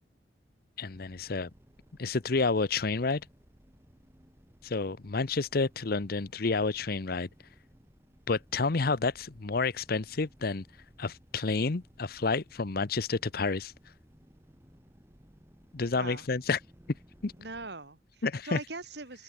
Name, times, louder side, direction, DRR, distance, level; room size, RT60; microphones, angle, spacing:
voice 1, 0.8-1.5 2.0-3.2 4.6-7.3 8.3-10.7 11.0-13.7 15.7-16.6 17.2-17.3 18.2-18.6, left 4 dB, 55° left, 0.8 m, -29 dB
sound 1, 0.9-17.7, equal, 15° right, 2.4 m, -59 dB
voice 2, 15.9-16.2 17.4-19.2, right 3 dB, 65° right, 3.1 m, -41 dB
open air
head